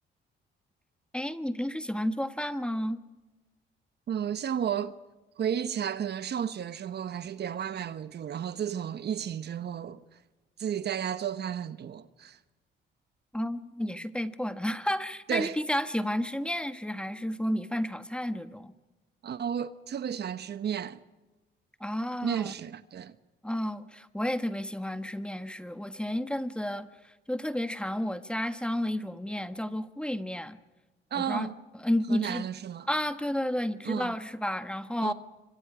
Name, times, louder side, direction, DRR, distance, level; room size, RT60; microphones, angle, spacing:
voice 1, 1.1-3.0 13.3-18.7 21.8-22.5 23.4-30.6 31.2-31.5 31.8-32.5 32.9-35.1, left 1 dB, 5° left, 1.3 m, -31 dB
voice 2, 4.1-4.9 5.4-10.0 10.6-12.4 15.3-15.6 19.2-21.0 22.2-23.1 31.1-31.5 32.1-32.9 33.8-34.1 35.0-35.1, right 8 dB, 55° right, 1.1 m, -32 dB
26.0 x 25.0 x 5.0 m
cardioid pair, 90°, 20 cm